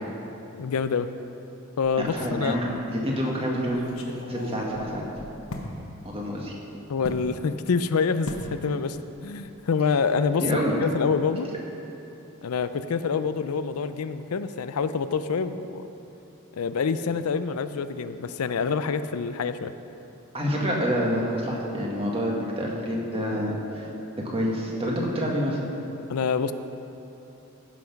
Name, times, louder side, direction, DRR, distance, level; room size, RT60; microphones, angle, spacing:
voice 1, 0.5-1.1 1.8-2.6 6.9-9.0 9.2-10.5 10.8-11.5 12.4-15.9 16.5-19.7 26.1-26.5, left 5 dB, 85° left, 11 dB, 0.5 m, -26 dB
voice 2, 2.0-2.6 2.9-3.8 4.3-5.0 6.0-6.5 10.4-10.7 20.3-23.9 24.2-25.6, equal, 25° right, -2 dB, 1.7 m, -27 dB
sound 1, 3.7-5.7 7.0-7.3 8.3-8.5 8.9-9.2 9.4-9.6, left 1 dB, 65° left, 1.1 m, -38 dB
15.0 x 5.9 x 5.8 m, 2.9 s
head